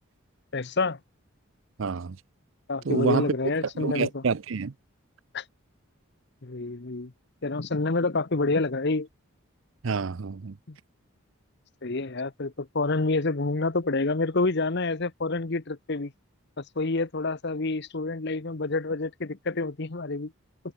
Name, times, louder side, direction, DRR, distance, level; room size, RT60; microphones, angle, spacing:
voice 1, 0.5-1.0 2.7-4.2 5.3-5.4 6.4-7.1 7.4-9.1 10.7-10.8 11.8-16.1 16.6-20.3, left 3 dB, 55° left, 1.0 m, -28 dB
voice 2, 1.8-2.2 2.9-3.3 3.8-4.7 9.8-10.5, right 5 dB, 65° right, 0.6 m, -27 dB
head